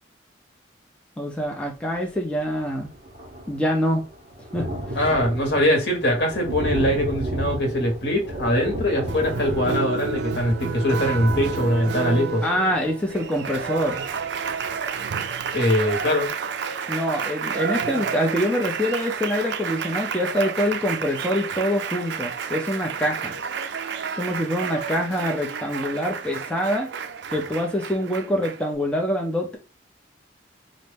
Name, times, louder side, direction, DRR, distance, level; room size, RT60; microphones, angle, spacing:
voice 1, 1.2-2.9 3.5-4.0 4.5-4.7 12.4-14.0 16.9-23.3 24.2-26.9 27.3-29.6, equal, 5° left, 0.5 m, -25 dB
Thunder, 2.1-2.2 2.4-15.0 15.5-15.6 15.9-16.0, equal, 35° right, 1.0 m, -33 dB
voice 2, 4.9-12.4 15.5-16.3, equal, 60° left, 1.3 m, -22 dB
Applause, 9.1-28.7, right 6 dB, 65° right, 0.4 m, -30 dB
4.1 x 2.6 x 3.4 m
head